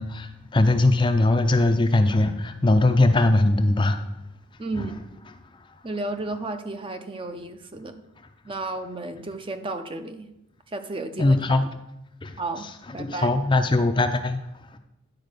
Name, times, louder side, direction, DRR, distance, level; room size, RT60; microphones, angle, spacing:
voice 1, 0.0-4.0 4.8-4.9 11.2-11.7 12.2-12.4 13.0-14.8, left 2 dB, 20° left, 7 dB, 0.5 m, -21 dB
voice 2, 4.6-4.9 5.8-8.0 8.4-10.3 10.7-11.6 12.4-12.7 12.9-13.4, right 2 dB, 25° right, 8 dB, 0.6 m, -33 dB
10.5 x 4.4 x 6.6 m, 0.86 s
head